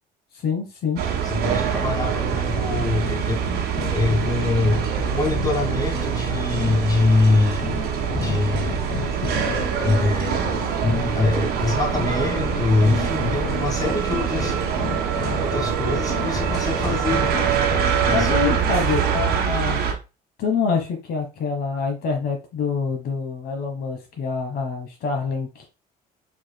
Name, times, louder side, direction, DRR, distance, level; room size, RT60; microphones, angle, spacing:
voice 1, 0.4-1.0 12.9-13.6 18.1-19.8 20.4-25.6, left 5 dB, 65° left, 1.2 m, -26 dB
sound 1, 1.0-19.9, right 7 dB, 70° right, 1.1 m, -25 dB
voice 2, 1.2-3.4 3.9-7.7 8.1-9.1 9.8-10.5 10.8-14.6 15.4-17.4 18.0-18.7, left 3 dB, 20° left, 1.7 m, -24 dB
sound 2, 2.7-18.3, left 6 dB, 40° left, 0.6 m, -32 dB
sound 3, 8.9-19.4, right 12 dB, 90° right, 0.5 m, -30 dB
4.9 x 4.6 x 2.2 m
cardioid pair, 110°, 17 cm